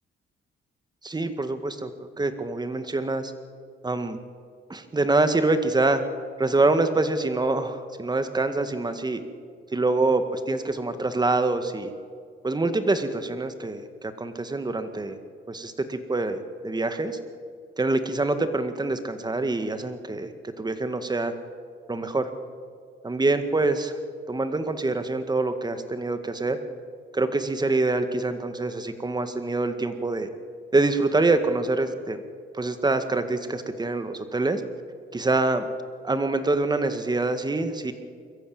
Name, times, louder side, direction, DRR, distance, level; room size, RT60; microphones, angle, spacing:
voice 1, 1.0-1.9 2.2-3.3 3.8-4.2 4.7-6.0 6.4-9.2 9.7-11.9 12.4-15.2 15.5-17.2 17.8-21.3 21.9-22.3 23.0-24.0 24.3-26.6 27.1-30.3 30.7-32.2 32.5-34.6 35.1-35.7 36.0-37.9, right 2 dB, 20° right, 9 dB, 1.9 m, -25 dB
22.5 x 14.5 x 8.9 m, 2.2 s
cardioid pair, 90°, 20 cm